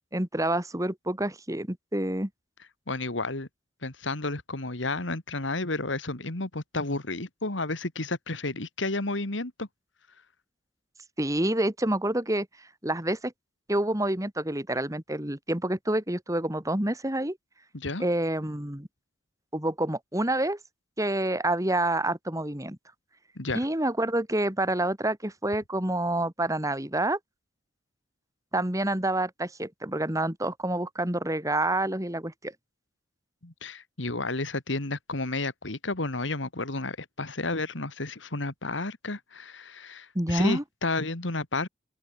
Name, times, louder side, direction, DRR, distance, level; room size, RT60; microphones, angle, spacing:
voice 1, 0.1-2.3 11.2-12.5 12.8-13.3 13.7-17.4 18.0-18.9 19.5-20.6 21.0-22.8 23.5-27.2 28.5-32.5 40.1-40.6, right 1 dB, 20° right, 2.8 m, -28 dB
voice 2, 2.9-3.5 3.8-9.7 17.7-18.0 23.4-23.7 33.4-41.7, left 2 dB, 90° left, 2.5 m, -32 dB
open air
head